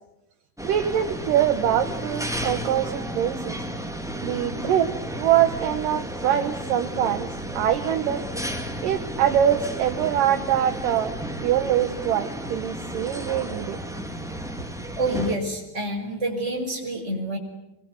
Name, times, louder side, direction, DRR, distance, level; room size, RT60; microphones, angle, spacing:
sound 1, 0.6-15.3, right 1 dB, ahead, 1.3 m, -33 dB
voice 1, 0.6-3.6 4.2-8.3 8.8-11.1 11.4-13.8, right 10 dB, 70° right, 8 dB, 2.5 m, -24 dB
voice 2, 15.0-17.4, right 1 dB, 15° right, 0 dB, 5.7 m, -27 dB
26.0 x 23.0 x 9.7 m, 0.89 s
omnidirectional pair, 4.4 m